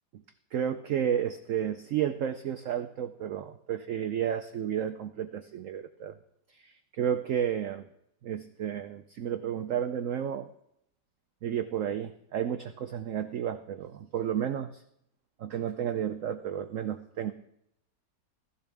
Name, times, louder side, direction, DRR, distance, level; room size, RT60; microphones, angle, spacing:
voice 1, 0.5-6.2 6.5-7.8 8.2-10.5 11.4-14.8 15.4-17.3, right 9 dB, 70° right, 8 dB, 0.7 m, -32 dB
15.5 x 15.0 x 3.5 m, 0.76 s
omnidirectional pair, 2.0 m